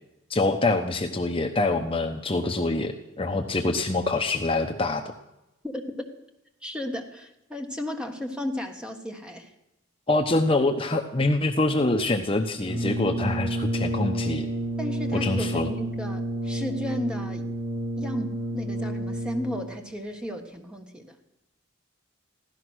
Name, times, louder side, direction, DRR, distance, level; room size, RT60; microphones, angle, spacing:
voice 1, 0.3-5.0 10.1-14.5 15.1-15.7, left 2 dB, 25° left, 4 dB, 0.8 m, -25 dB
voice 2, 5.6-6.0 6.6-9.5 14.8-17.5 18.0-21.2, equal, 5° right, 4 dB, 1.3 m, -34 dB
Brass instrument, 12.6-19.8, right 1 dB, 50° right, 6.5 m, -30 dB
16.0 x 13.0 x 6.2 m, 0.92 s
head